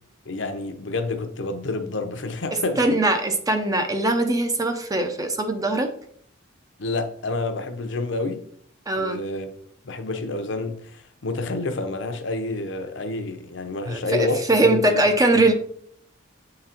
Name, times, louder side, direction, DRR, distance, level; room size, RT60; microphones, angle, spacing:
voice 1, 0.3-2.8 6.8-8.4 9.0-9.5 9.8-15.1 15.3-15.4, left 2 dB, 60° left, 0.8 m, -28 dB
voice 2, 2.5-5.9 8.9-9.2 13.9-15.5, right 2 dB, 20° right, 0.6 m, -21 dB
7.5 x 3.9 x 4.4 m
head